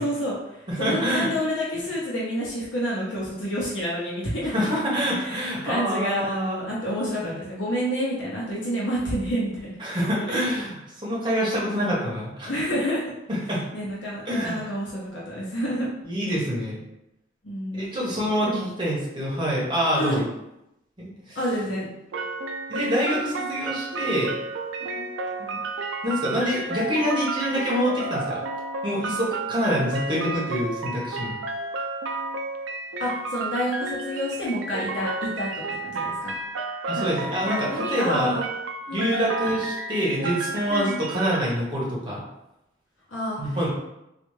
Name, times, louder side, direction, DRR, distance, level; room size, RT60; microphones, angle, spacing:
voice 1, 0.0-4.5 5.2-9.8 12.4-13.0 13.7-15.9 17.4-17.9 18.4-18.7 20.0-20.2 21.3-21.9 25.0-25.1 33.0-36.3 36.9-38.4 38.9-39.3 40.7-41.0 43.1-43.4, equal, 80° left, -6 dB, 0.8 m, -29 dB
voice 2, 0.7-1.3 4.5-6.5 7.2-7.3 9.8-12.5 13.3-13.6 14.3-14.6 16.0-16.8 17.7-20.2 21.0-21.4 22.7-24.3 25.4-25.6 26.0-28.4 28.8-31.4 36.9-38.4 38.9-42.2 43.4-43.7, equal, 25° right, -5 dB, 1.0 m, -26 dB
sound 1, 22.1-41.4, right 3 dB, 85° right, 0.4 m, -32 dB
3.4 x 2.4 x 3.1 m, 0.87 s
head